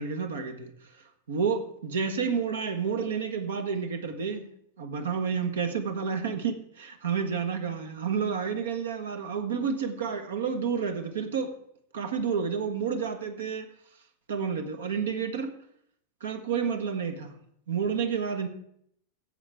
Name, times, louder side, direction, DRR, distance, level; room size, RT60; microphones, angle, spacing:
voice 1, 0.0-4.5 4.8-11.5 11.9-13.7 14.3-15.5 16.2-17.3 17.7-18.5, right 6 dB, 65° right, 6 dB, 1.4 m, -30 dB
16.5 x 7.8 x 3.5 m, 0.70 s
figure-of-eight pair, 90°, 0 cm